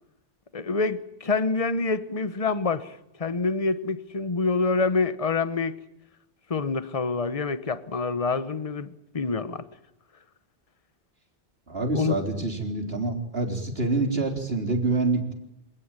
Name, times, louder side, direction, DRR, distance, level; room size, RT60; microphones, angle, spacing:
voice 1, 0.5-5.7 6.5-9.6 11.9-12.2, left 4 dB, 30° left, 1.2 m, -26 dB
voice 2, 11.7-15.3, right 3 dB, 60° right, 4.1 m, -26 dB
27.0 x 18.0 x 9.0 m
omnidirectional pair, 1.2 m